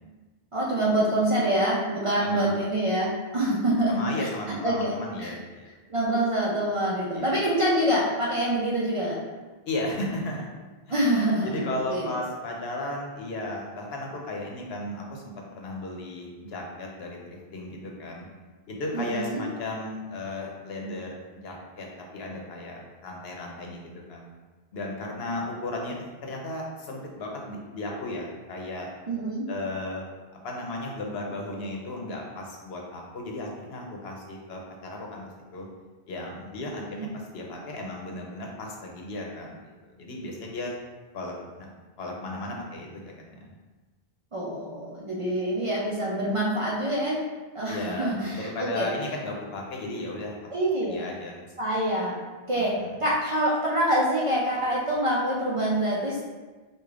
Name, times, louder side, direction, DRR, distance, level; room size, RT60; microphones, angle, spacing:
voice 1, 0.5-4.3 4.6-5.3 5.9-9.2 10.9-11.6 11.9-12.1 18.9-19.4 29.1-29.5 36.8-37.1 44.3-47.2 47.5-48.9 50.5-51.1 51.6-52.2 52.5-52.7 53.0-56.2, right 1 dB, 40° right, -5 dB, 0.5 m, -26 dB
voice 2, 2.2-2.6 3.9-5.7 7.1-7.4 9.7-10.5 10.9-11.0 11.4-18.3 18.7-21.9 22.1-24.3 24.7-28.9 29.5-30.0 30.4-35.7 36.1-40.7 41.1-41.7 42.0-43.0 43.3-43.5 47.7-50.5 50.9-51.4 52.6-53.0, left 2 dB, 80° left, 0 dB, 0.9 m, -35 dB
4.8 x 2.4 x 2.4 m, 1.3 s
omnidirectional pair, 1.0 m